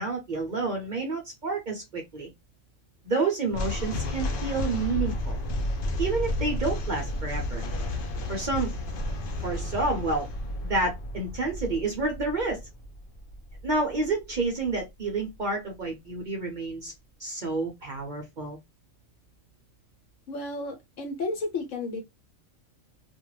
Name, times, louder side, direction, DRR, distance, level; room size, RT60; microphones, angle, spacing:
voice 1, 0.0-2.3 3.0-5.4 6.0-7.6 8.3-8.7 9.4-10.3 10.6-12.6 13.6-16.9 17.2-18.6, right 3 dB, 50° right, 0.6 m, -29 dB
sound 1, 3.5-14.8, left 1 dB, 55° left, 0.7 m, -32 dB
voice 2, 20.3-22.0, left 2 dB, 75° left, 1.2 m, -32 dB
2.5 x 2.2 x 3.0 m
omnidirectional pair, 1.3 m